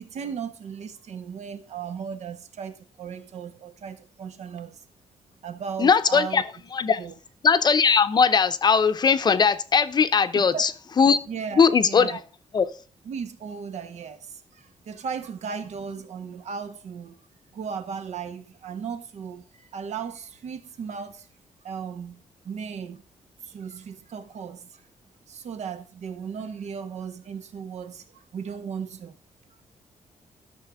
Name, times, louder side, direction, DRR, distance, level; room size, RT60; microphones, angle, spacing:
voice 1, 0.0-4.8 5.4-6.4 7.0-7.1 10.3-10.7 11.3-12.2 13.0-17.2 17.5-21.3 21.6-23.0 23.4-24.8 25.3-29.2, right 6 dB, 70° right, 1.3 m, -36 dB
voice 2, 5.8-6.4 6.7-7.0 7.4-10.7 11.0-11.3 11.6-12.2 12.5-12.6, left 6 dB, 35° left, 0.7 m, -19 dB
12.5 x 6.6 x 3.6 m
wide cardioid pair, 165°, 12 cm